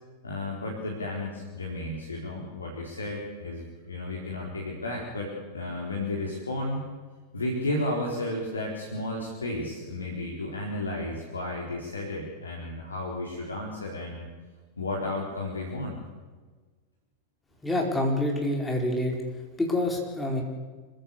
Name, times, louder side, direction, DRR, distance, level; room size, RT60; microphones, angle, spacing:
voice 1, 0.2-6.8 7.3-14.3 14.8-16.0, left 1 dB, 75° left, -1 dB, 4.3 m, -33 dB
voice 2, 17.6-19.1 19.6-20.4, left 1 dB, 10° left, 0 dB, 4.6 m, -26 dB
26.0 x 16.0 x 8.3 m, 1.4 s
figure-of-eight pair, 90°, 0 cm